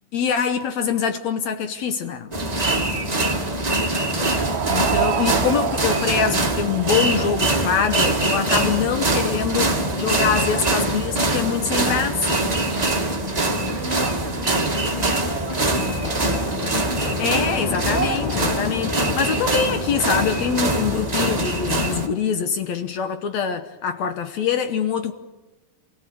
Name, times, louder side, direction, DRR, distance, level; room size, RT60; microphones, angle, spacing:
voice 1, 0.1-2.3 4.2-12.5 17.2-25.1, left 7 dB, 70° left, 1.7 m, -24 dB
voice 2, 2.3-3.7 10.1-10.7 12.6-13.2 13.5-16.3, left 1 dB, 30° left, 0.6 m, -38 dB
sound 1, 2.3-22.1, right 2 dB, 20° right, 1.0 m, -23 dB
sound 2, 4.2-10.5, right 11 dB, 85° right, 1.5 m, -29 dB
sound 3, 14.7-21.5, left 4 dB, 85° left, 1.0 m, -35 dB
27.5 x 16.5 x 8.5 m
omnidirectional pair, 4.3 m